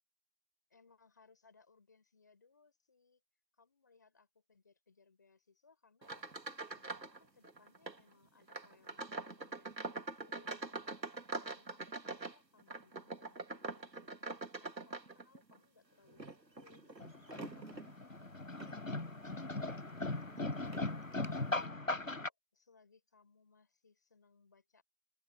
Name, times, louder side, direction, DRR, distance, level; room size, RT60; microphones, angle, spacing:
voice 1, 0.7-3.2 3.6-6.3 6.7-10.8 11.4-18.5 20.6-20.9 21.5-24.8, left 4 dB, 10° left, 7.4 m, -68 dB
sound 1, 6.0-7.2 7.4-8.0 8.5-15.6 16.1-17.9 18.5-18.8 19.3-19.4 20.3-20.4 20.7-20.9, right 3 dB, 80° right, 2.0 m, -44 dB
sound 2, 17.0-22.3, left 2 dB, 55° left, 0.5 m, -39 dB
open air
figure-of-eight pair, 175°, 50 cm